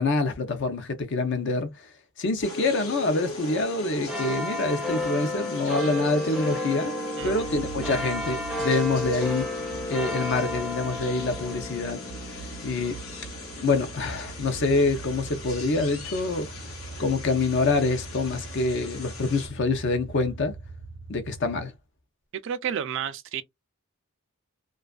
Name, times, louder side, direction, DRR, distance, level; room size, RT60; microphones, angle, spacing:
voice 1, 0.0-1.7 2.2-6.9 7.2-9.4 9.9-12.0 12.6-12.9 13.6-16.5 17.0-20.5 21.1-21.7, left 3 dB, 55° left, 0.6 m, -26 dB
sound 1, 2.4-19.5, left 2 dB, 75° left, 0.9 m, -41 dB
sound 2, 4.1-17.0 17.6-17.7, left 1 dB, ahead, 0.5 m, -33 dB
voice 2, 7.2-7.5 22.4-23.4, right 8 dB, 60° right, 0.4 m, -31 dB
sound 3, 7.2-21.6, right 4 dB, 85° right, 0.7 m, -42 dB
2.4 x 2.4 x 2.2 m
head